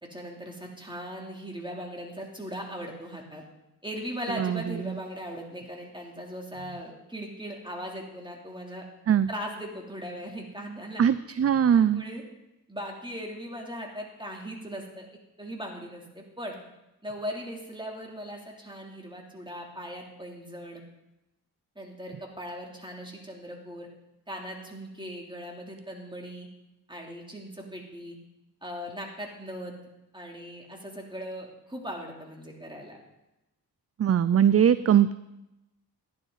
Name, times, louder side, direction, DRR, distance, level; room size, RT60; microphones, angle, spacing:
voice 1, 0.0-3.4 3.8-8.8 9.3-11.0 11.7-12.2 12.7-15.1 15.4-16.6 17.0-20.8 21.7-23.9 24.3-26.5 26.9-28.2 28.6-29.7 30.1-33.0, equal, 10° right, 0 dB, 3.1 m, -39 dB
voice 2, 4.3-5.0 9.1-9.3 11.0-12.0 34.0-35.1, right 9 dB, 40° right, 15 dB, 0.4 m, -21 dB
14.5 x 11.0 x 4.0 m, 0.93 s
cardioid pair, 45°, 41 cm